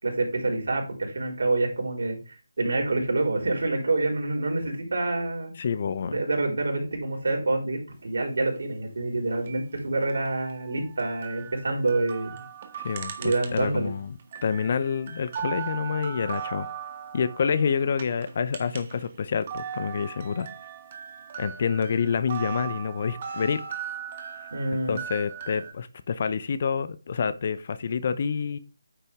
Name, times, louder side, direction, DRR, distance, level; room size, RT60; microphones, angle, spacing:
voice 1, 0.0-2.2 2.6-5.5 6.0-12.4 13.2-13.9 24.5-25.0, right 2 dB, 65° right, 1 dB, 4.5 m, -27 dB
voice 2, 5.6-6.1 12.8-16.7 17.1-20.5 21.4-23.6 24.9-28.6, left 6 dB, 45° left, 14 dB, 0.8 m, -28 dB
sound 1, 9.3-13.9 14.2-19.1 19.3-25.7, right 8 dB, 35° right, 1.7 m, -38 dB
9.4 x 6.8 x 3.6 m, 0.34 s
figure-of-eight pair, 155°, 0 cm